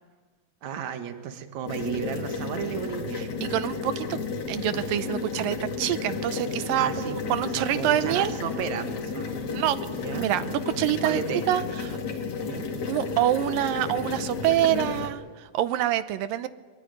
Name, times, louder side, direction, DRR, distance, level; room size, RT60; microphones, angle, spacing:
voice 1, 0.6-3.3 6.7-9.6 9.9-10.3 11.0-11.4 12.4-12.7, right 7 dB, 55° right, 8 dB, 2.8 m, -34 dB
sound 1, 1.7-15.1, left 4 dB, 55° left, 3.8 m, -32 dB
voice 2, 3.2-4.2 4.5-8.3 9.5-9.8 10.1-11.2 11.5-12.0 12.9-16.5, right 12 dB, 75° right, 14 dB, 2.5 m, -26 dB
22.5 x 22.0 x 9.4 m, 1.4 s
omnidirectional pair, 4.1 m